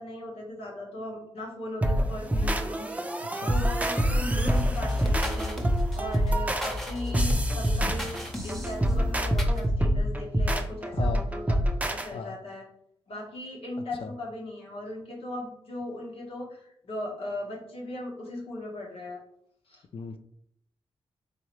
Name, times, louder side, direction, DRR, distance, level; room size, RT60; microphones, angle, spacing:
voice 1, 0.0-5.6 5.9-12.6 13.1-19.2 19.7-19.8, left 1 dB, 90° left, -2 dB, 1.2 m, -38 dB
sound 1, 1.8-12.1, equal, 15° right, 0.5 m, -26 dB
sound 2, 4.5-9.6, left 1 dB, ahead, 0.9 m, -34 dB
voice 2, 10.9-11.2 12.1-12.4 14.0-14.1 19.9-20.2, left 5 dB, 70° left, 8 dB, 0.4 m, -36 dB
3.6 x 3.1 x 3.0 m, 0.71 s
cardioid pair, 60°, 10 cm